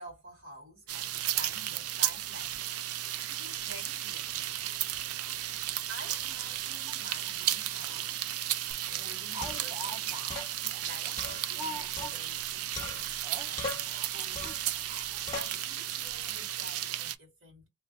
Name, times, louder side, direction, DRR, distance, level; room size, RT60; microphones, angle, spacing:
voice 1, 0.0-4.7 5.2-5.5 5.9-8.3 8.9-14.6 15.0-17.7, right 1 dB, 60° right, 2.0 m, -50 dB
sound 1, 0.9-17.2, right 12 dB, 75° right, 0.4 m, -34 dB
Speech, 2.1-2.2 2.5-2.7 3.1-3.3 3.5-3.8 4.1-4.2 4.9-5.2 5.9-8.0 8.4-8.5 8.9-12.4 12.7-12.9 13.2-15.5 16.1-16.2 16.4-16.5, right 1 dB, 35° right, 1.0 m, -46 dB
sound 2, 8.7-8.8 9.4-9.8 10.3-10.5 11.2-12.4 12.8-13.3 13.6-14.0 14.4-14.7 15.3-15.6, left 3 dB, 15° left, 0.9 m, -40 dB
3.1 x 2.2 x 2.6 m
head